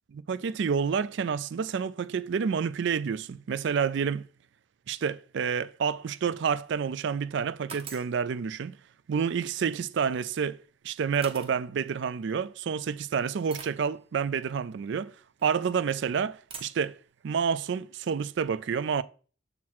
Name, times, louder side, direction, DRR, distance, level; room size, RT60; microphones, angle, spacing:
voice 1, 0.1-4.3 4.9-8.8 9.1-10.6 10.8-15.1 15.4-17.0 17.2-19.0, right 6 dB, 55° right, 0.3 m, -29 dB
sound 1, 6.5-6.9 7.7-8.2 10.2-10.3 11.2-11.6 12.5-12.6 13.5-13.8 15.4-15.7 16.5-16.9, right 5 dB, 25° right, 0.9 m, -43 dB
7.2 x 4.1 x 4.2 m
head